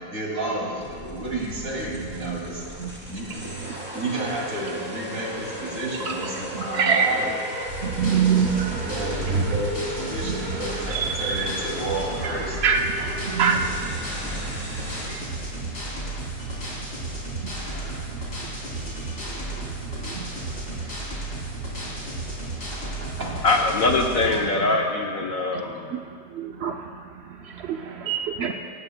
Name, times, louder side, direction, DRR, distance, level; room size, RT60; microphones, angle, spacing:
voice 1, 0.0-2.7 3.0-7.3 8.8-12.6 22.6-23.4 25.4-25.5, right 2 dB, 45° right, -3 dB, 3.0 m, -31 dB
sound 1, 0.8-15.1, left 1 dB, 5° right, 2.8 m, -37 dB
voice 2, 2.0-2.4 2.8-2.9 3.4-3.8 6.1-9.6 10.2-11.4 12.6-14.0 14.7-15.3 15.6-15.7 17.4-17.5 18.8-18.9 19.2-20.9 21.8-21.9 23.1-23.2 24.2-24.7 25.5-25.6 25.9-28.5, right 6 dB, 70° right, 3 dB, 0.6 m, -27 dB
sound 2, 7.7-24.3, right 2 dB, 35° left, 3.6 m, -33 dB
voice 3, 23.4-25.9, left 3 dB, 55° left, 2 dB, 1.1 m, -22 dB
19.5 x 16.5 x 2.2 m, 2.2 s
omnidirectional pair, 1.9 m